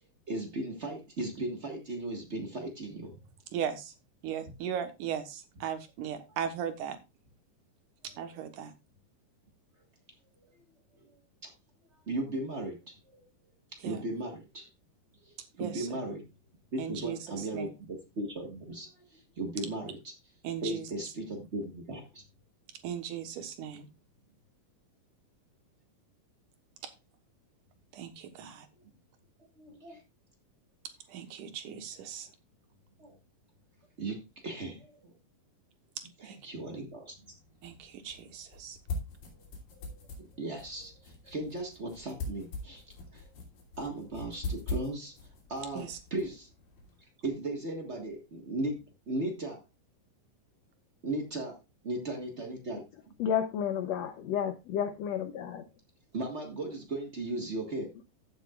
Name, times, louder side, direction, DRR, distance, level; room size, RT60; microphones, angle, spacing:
voice 1, 0.3-3.1 4.4-4.5 8.1-8.2 11.4-11.5 12.1-13.2 13.7-14.7 15.2-16.2 16.7-20.1 20.6-22.2 23.7-23.8 29.6-30.0 33.0-33.1 34.0-35.1 36.2-37.1 39.7-42.8 43.1-43.3 43.8-45.1 45.5-46.5 47.2-48.8 49.1-49.6 51.0-51.6 51.8-52.8 56.1-57.9, right 2 dB, 85° right, 0.6 m, -37 dB
voice 2, 3.5-3.9 4.2-7.0 8.2-8.7 13.8-14.0 15.6-15.9 16.8-17.7 20.4-20.8 21.3-21.4 22.8-23.9 27.9-28.7 31.1-32.3 36.2-36.4 37.6-38.8 45.7-46.0, right 8 dB, 70° right, 2.5 m, -37 dB
sound 1, 37.1-47.0, left 2 dB, 75° left, 4.5 m, -42 dB
voice 3, 53.2-55.6, left 8 dB, 90° left, 1.5 m, -31 dB
15.0 x 7.3 x 2.4 m
omnidirectional pair, 3.9 m